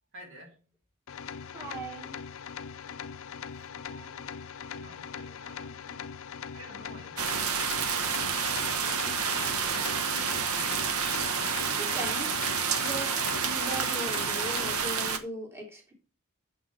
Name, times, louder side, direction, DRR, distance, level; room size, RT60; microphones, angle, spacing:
voice 1, 0.1-0.7 3.5-4.4 4.7-5.9 6.5-8.2 8.7-10.1, equal, 60° right, 3.0 m, -52 dB
sound 1, 1.1-14.8, left 7 dB, 65° left, 0.5 m, -41 dB
voice 2, 1.5-2.1 5.9-6.0 11.7-12.5 12.8-13.1 13.4-15.9, right 1 dB, 10° right, 3.4 m, -39 dB
sound 2, 7.2-15.2, right 6 dB, 85° right, 1.1 m, -29 dB
7.9 x 5.9 x 6.6 m
head